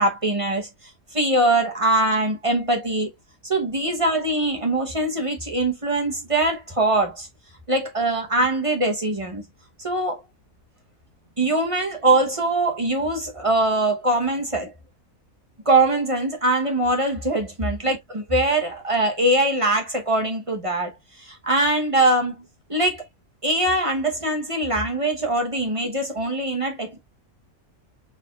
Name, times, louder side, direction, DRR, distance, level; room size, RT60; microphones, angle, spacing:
voice 1, 0.0-3.1 3.4-7.3 7.7-9.4 9.8-10.2 11.4-14.7 15.7-18.0 18.3-20.9 21.2-22.4 22.7-23.0 23.4-27.0, right 2 dB, 30° right, 0.7 m, -22 dB
4.1 x 3.9 x 2.3 m
omnidirectional pair, 1.7 m